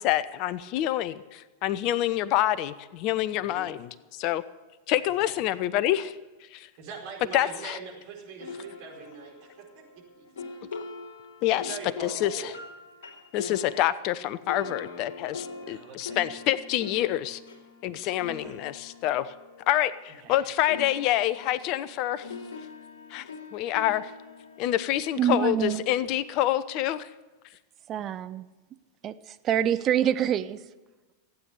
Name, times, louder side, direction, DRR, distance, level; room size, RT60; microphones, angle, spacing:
voice 1, 0.0-4.4 4.9-6.2 6.5-6.7 7.3-7.8 11.4-12.5 13.3-17.4 17.8-19.3 19.7-22.3 23.1-24.1 24.6-27.1, left 13 dB, 40° left, 0.7 m, -27 dB
voice 2, 6.8-9.3 10.2-10.3 11.5-12.6 15.6-16.2 18.2-18.5 20.2-20.4, right 5 dB, 45° right, 4.7 m, -42 dB
sound 1, 8.4-20.4 20.7-25.9, left 4 dB, 60° left, 2.9 m, -43 dB
voice 3, 25.2-25.8 27.9-28.5 29.0-29.1 29.4-30.6, right 10 dB, 30° right, 0.7 m, -25 dB
15.5 x 9.2 x 8.1 m
figure-of-eight pair, 90°, 0 cm